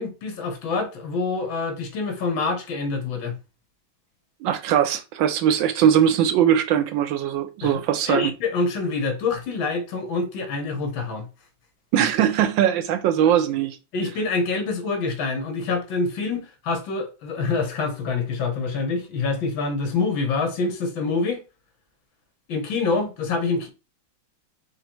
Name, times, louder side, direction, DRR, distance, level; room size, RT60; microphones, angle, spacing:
voice 1, 0.0-3.4 7.6-11.3 13.9-21.4 22.5-23.7, left 4 dB, 70° left, 1.8 m, -26 dB
voice 2, 4.4-8.3 11.9-13.8, right 9 dB, 75° right, 1.2 m, -20 dB
5.0 x 2.4 x 4.4 m
omnidirectional pair, 2.2 m